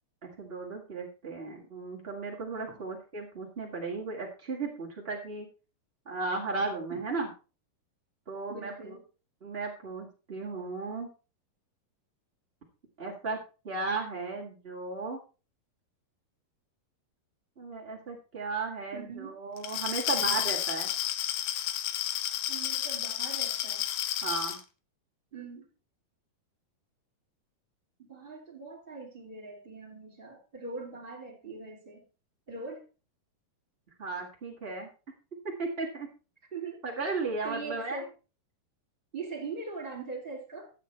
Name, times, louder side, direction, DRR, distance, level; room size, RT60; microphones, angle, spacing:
voice 1, 0.2-5.5 6.0-7.3 8.3-9.0 9.4-11.1 13.0-15.2 17.6-20.9 24.2-24.6 34.0-34.9 35.6-36.1 36.8-38.0, right 3 dB, 45° right, -3 dB, 0.7 m, -35 dB
voice 2, 8.5-9.0 18.9-19.3 22.5-23.9 25.3-25.6 28.0-32.0 32.5-32.8 36.5-36.8 37.4-38.1 39.1-40.7, right 4 dB, 15° right, 2 dB, 2.0 m, -41 dB
Glass, 19.6-24.6, left 12 dB, 75° left, 2.6 m, -31 dB
12.0 x 8.0 x 4.3 m, 0.33 s
omnidirectional pair, 4.6 m